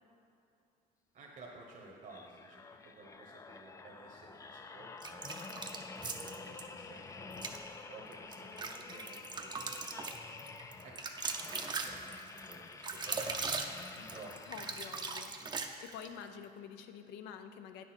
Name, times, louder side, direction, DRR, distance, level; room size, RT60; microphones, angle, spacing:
voice 1, 1.1-5.3 6.0-7.2 7.9-10.2 10.8-12.1 12.5-13.4 13.9-14.4, right 3 dB, 50° right, -1 dB, 1.1 m, -54 dB
sound 1, 2.0-15.6 16.2-16.4, left 4 dB, 20° left, 0.4 m, -49 dB
sound 2, 5.0-6.6 7.3-7.6 8.1-16.1, right 4 dB, 25° right, 0.6 m, -40 dB
voice 2, 14.4-15.3 15.8-17.8, left 8 dB, 90° left, 7 dB, 0.6 m, -48 dB
9.1 x 6.3 x 4.4 m, 2.6 s
cardioid pair, 110°, 17 cm